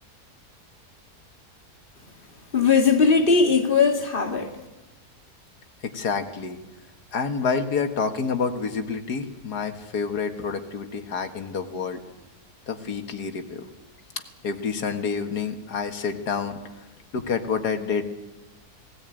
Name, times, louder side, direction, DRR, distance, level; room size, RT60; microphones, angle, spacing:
voice 1, 2.5-4.6, left 5 dB, 35° left, 2.0 m, -19 dB
voice 2, 5.8-6.6 7.1-12.0 12.7-13.7 14.4-16.6 17.1-18.0, left 5 dB, 75° left, 2.2 m, -28 dB
18.5 x 17.5 x 9.0 m
omnidirectional pair, 1.7 m